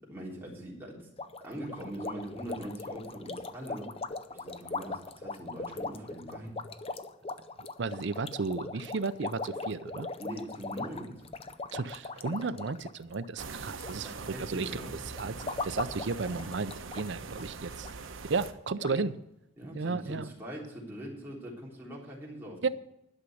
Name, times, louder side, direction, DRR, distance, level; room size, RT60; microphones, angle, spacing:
voice 1, 0.1-1.1 1.4-6.6 10.2-11.2 14.0-15.0 18.8-19.1 19.6-22.7, equal, 10° right, -4 dB, 3.5 m, -42 dB
sound 1, 1.2-13.9 14.2-14.6 15.1-17.1 17.3-17.5 17.8-17.9 18.5-18.6 18.8-19.0, left 3 dB, 30° left, 0.5 m, -39 dB
voice 2, 7.8-10.1 11.7-15.3 15.6-17.9 18.3-19.2 19.7-20.3 22.6-22.7, right 4 dB, 60° right, 13 dB, 0.6 m, -33 dB
sound 2, 13.4-18.5, right 4 dB, 80° right, 0.9 m, -42 dB
11.5 x 6.3 x 7.8 m, 0.84 s
head